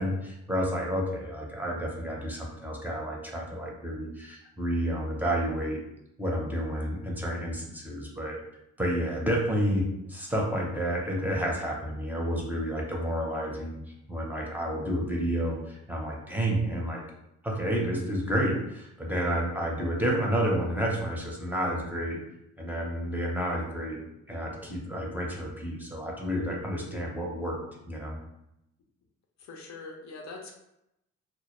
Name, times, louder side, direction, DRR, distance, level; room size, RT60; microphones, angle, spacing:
voice 1, 0.0-5.8 6.2-8.4 8.8-13.8 14.1-17.0 17.4-22.2 22.6-24.0 24.3-28.2, equal, 5° right, -2 dB, 0.5 m, -30 dB
voice 2, 29.4-30.6, left 3 dB, 65° left, 1 dB, 0.5 m, -43 dB
2.2 x 2.1 x 2.9 m, 0.84 s
cardioid pair, 90°, 30 cm